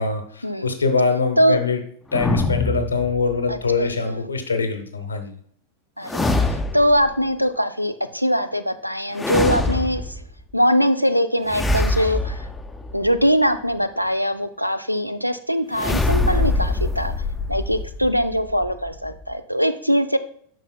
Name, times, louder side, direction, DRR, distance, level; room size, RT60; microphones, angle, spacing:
voice 1, 0.0-1.8 2.1-5.3, left 4 dB, 75° left, 7 dB, 0.9 m, -23 dB
sound 1, 2.1-3.6 6.0-7.1 9.1-10.3 11.5-13.3 15.7-19.3, left 2 dB, 10° left, 0.5 m, -24 dB
voice 2, 3.5-4.2 6.0-10.1 10.5-12.5 12.9-17.1 17.5-20.2, equal, 90° right, 12 dB, 0.4 m, -22 dB
9.0 x 5.6 x 2.2 m, 0.62 s
figure-of-eight pair, 90°, 0 cm